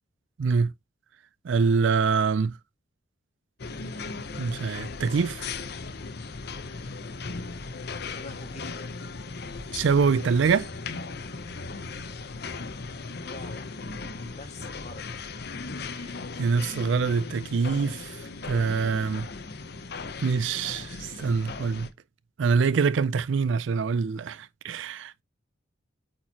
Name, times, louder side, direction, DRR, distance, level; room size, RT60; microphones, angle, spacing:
voice 1, 0.4-0.7 1.4-2.6 4.4-5.5 9.7-10.7 15.9-16.1 16.4-19.3 20.2-21.9 22.4-25.2, right 5 dB, 65° right, 0.4 m, -25 dB
sound 1, 3.6-21.9, left 4 dB, 55° left, 0.8 m, -37 dB
voice 2, 8.0-9.0 13.1-15.3, left 2 dB, 35° left, 1.7 m, -46 dB
8.6 x 4.4 x 2.8 m
head